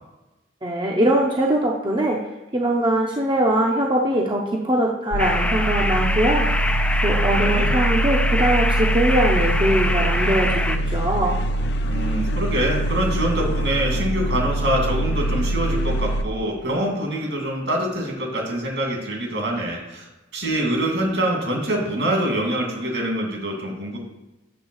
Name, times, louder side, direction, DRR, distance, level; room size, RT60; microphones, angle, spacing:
voice 1, 0.6-2.2 2.5-6.5 7.0-11.3, right 1 dB, 25° right, -1 dB, 0.7 m, -21 dB
sound 1, 5.1-16.2, right 1 dB, 65° left, 0.5 m, -23 dB
sound 2, 5.2-10.8, left 1 dB, 5° left, 0.3 m, -25 dB
voice 2, 7.1-7.8 11.9-20.1 20.3-24.0, right 1 dB, 70° right, -1 dB, 2.4 m, -25 dB
8.0 x 3.5 x 6.3 m, 1.0 s
head